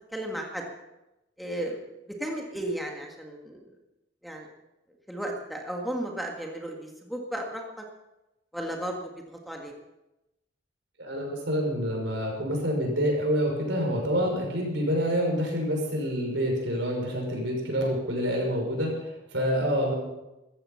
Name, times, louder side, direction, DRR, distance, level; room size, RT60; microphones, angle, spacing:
voice 1, 0.1-0.6 1.4-1.9 2.2-3.7 4.2-4.5 5.1-7.6 8.5-9.7, right 1 dB, ahead, 1 dB, 1.8 m, -34 dB
voice 2, 11.0-19.9, equal, 70° right, 1 dB, 5.9 m, -27 dB
15.0 x 14.0 x 5.8 m, 0.96 s
head